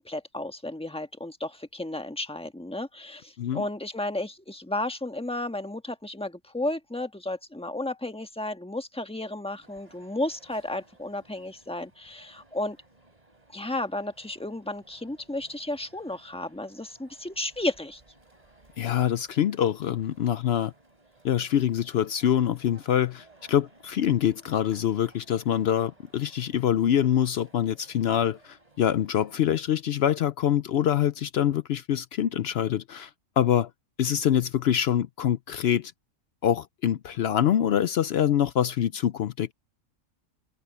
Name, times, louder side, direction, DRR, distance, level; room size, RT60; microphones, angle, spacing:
voice 1, 0.0-12.8 13.5-18.0, left 1 dB, 5° left, 1.3 m, -33 dB
sound 1, 9.6-29.5, right 2 dB, 30° right, 3.4 m, -59 dB
voice 2, 18.8-20.7 21.2-33.1 33.4-33.7 34.0-35.9 36.4-39.5, left 10 dB, 65° left, 0.7 m, -25 dB
omnidirectional pair, 1.4 m